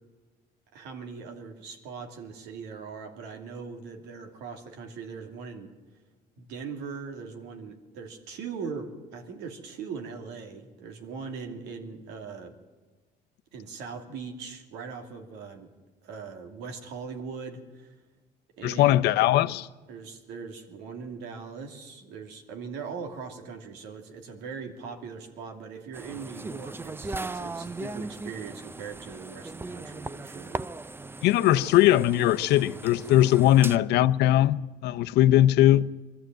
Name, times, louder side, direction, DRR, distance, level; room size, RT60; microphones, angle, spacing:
voice 1, 0.7-5.7 6.4-12.6 13.5-15.7 16.0-17.9 18.6-19.1 19.9-30.6 33.6-33.8, right 5 dB, 90° right, 2.8 m, -40 dB
voice 2, 18.6-19.7 31.2-35.9, left 13 dB, 80° left, 0.7 m, -20 dB
sound 1, 25.9-33.8, right 3 dB, 15° right, 0.5 m, -38 dB
21.5 x 14.0 x 9.1 m
cardioid pair, 110°, 17 cm